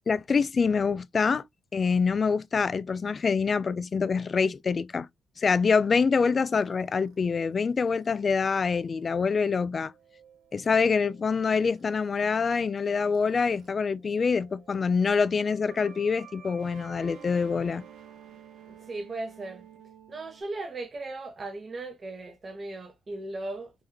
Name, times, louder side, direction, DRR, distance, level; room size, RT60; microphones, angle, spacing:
voice 1, 0.1-1.4 1.7-5.1 5.4-9.9 10.5-17.8, left 5 dB, 40° left, 0.3 m, -25 dB
sound 1, 6.5-13.7 14.0-20.4, right 8 dB, 75° right, 0.8 m, -53 dB
voice 2, 18.7-19.6 20.1-23.7, right 2 dB, 35° right, 0.6 m, -37 dB
3.5 x 2.2 x 3.1 m
cardioid pair, 90°, 0 cm